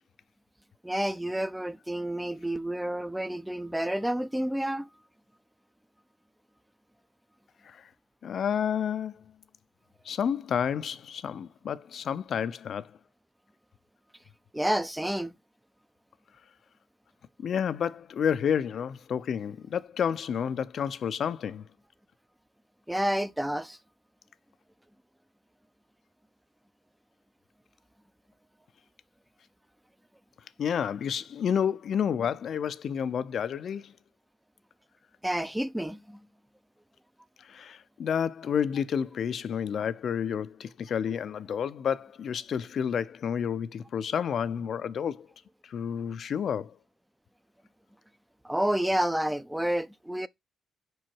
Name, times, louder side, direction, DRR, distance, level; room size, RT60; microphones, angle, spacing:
voice 1, 0.8-4.9 14.5-15.3 22.9-23.8 35.2-36.2 48.4-50.3, right 1 dB, 5° right, 0.4 m, -29 dB
voice 2, 8.2-9.2 10.1-12.9 17.4-21.6 30.6-33.9 37.4-45.3 45.6-46.7, left 8 dB, 60° left, 0.5 m, -30 dB
5.0 x 4.7 x 4.5 m
cardioid pair, 90°, 0 cm